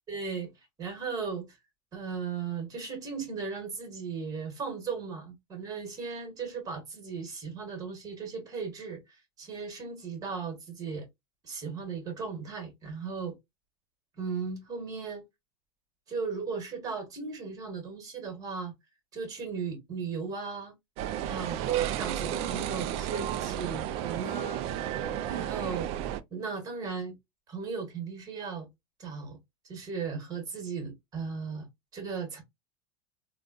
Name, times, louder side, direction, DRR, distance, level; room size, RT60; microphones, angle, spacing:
voice 1, 0.1-0.5 0.8-1.6 1.9-11.1 11.4-13.3 14.2-15.2 16.1-18.7 19.1-20.7 21.2-24.7 25.2-25.9 26.3-27.2 27.5-28.7 29.0-29.4 29.6-31.7 31.9-32.4, right 5 dB, 25° right, 1.4 m, -36 dB
sound 1, 21.0-26.2, right 11 dB, 50° right, 0.4 m, -33 dB
3.6 x 2.2 x 2.5 m
supercardioid pair, 125°, 14 cm